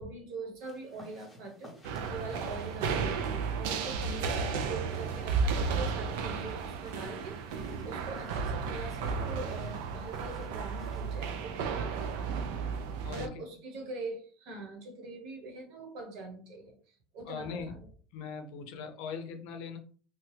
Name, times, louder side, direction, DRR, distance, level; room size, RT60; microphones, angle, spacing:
voice 1, 0.0-3.1 3.5-12.4 13.1-17.9, right 2 dB, 50° right, 2 dB, 1.1 m, -43 dB
sound 1, 0.6-11.3, left 1 dB, 5° left, 0.7 m, -57 dB
sound 2, 1.8-13.3, right 5 dB, 75° right, 0.4 m, -33 dB
voice 2, 13.0-13.4 17.2-17.7 18.1-19.8, left 6 dB, 60° left, 6 dB, 0.5 m, -40 dB
2.9 x 2.2 x 3.2 m, 0.42 s
cardioid pair, 170°, 0 cm